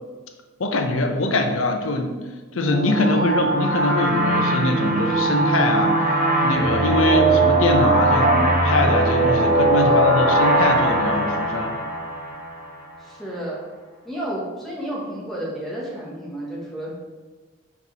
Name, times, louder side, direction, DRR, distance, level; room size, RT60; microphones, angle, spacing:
voice 1, 0.6-2.2 2.5-11.7, left 2 dB, 70° left, 4 dB, 0.7 m, -22 dB
sound 1, 2.6-12.9, right 2 dB, 40° right, 0.8 m, -20 dB
voice 2, 3.0-3.4 9.7-10.3 13.0-13.6 14.0-16.9, right 1 dB, ahead, -6 dB, 1.4 m, -32 dB
5.4 x 4.5 x 4.2 m, 1.3 s
head